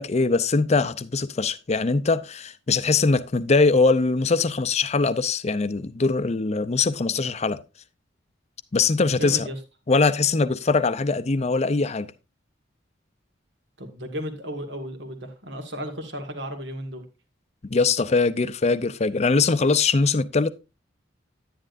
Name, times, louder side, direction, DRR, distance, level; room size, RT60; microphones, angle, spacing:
voice 1, 0.0-7.6 8.7-9.5 9.9-12.1 17.6-20.5, left 4 dB, 35° left, 0.5 m, -22 dB
voice 2, 9.1-9.6 13.8-17.0, equal, 65° right, 1.8 m, -34 dB
10.0 x 9.8 x 2.6 m
head